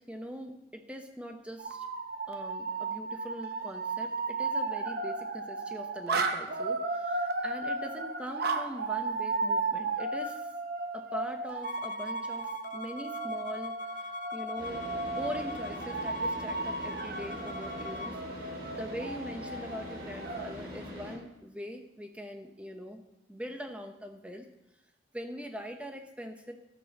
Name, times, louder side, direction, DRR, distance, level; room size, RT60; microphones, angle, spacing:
voice 1, 0.0-1.9 2.3-10.5 10.9-13.7 14.3-18.2 18.8-23.0 23.3-24.5 25.1-26.5, equal, 5° right, 4 dB, 1.1 m, -42 dB
sound 1, 1.6-20.5, right 3 dB, 60° right, 0.9 m, -34 dB
Bowed string instrument, 11.6-18.2, left 4 dB, 45° left, 0.6 m, -43 dB
Car / Idling, 14.6-21.2, left 1 dB, 25° right, 3.9 m, -43 dB
12.5 x 6.3 x 7.2 m, 0.88 s
head